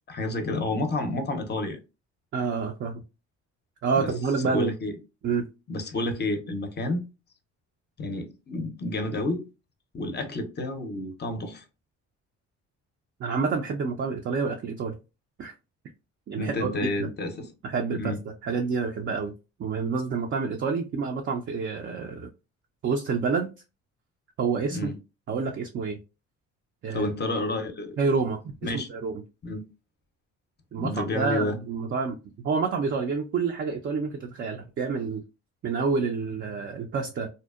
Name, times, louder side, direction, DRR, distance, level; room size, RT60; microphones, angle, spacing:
voice 1, 0.1-1.8 3.9-4.1 4.4-5.0 5.7-7.0 8.0-9.4 9.9-11.6 16.4-17.5 18.0-18.2 24.7-25.0 26.9-28.0 28.6-28.9 29.4-29.6 30.8-31.6, left 2 dB, 35° left, 0.5 m, -30 dB
voice 2, 2.3-3.0 3.8-4.7 5.2-5.5 13.2-14.9 15.4-15.5 16.3-16.7 17.0-17.1 17.6-18.2 18.4-19.3 19.6-22.3 22.8-23.5 24.4-24.9 25.3-26.0 26.8-27.1 28.0-29.1 30.7-35.2 35.6-37.3, right 5 dB, 40° right, 0.4 m, -28 dB
2.7 x 2.0 x 2.2 m
cardioid pair, 90°, 30 cm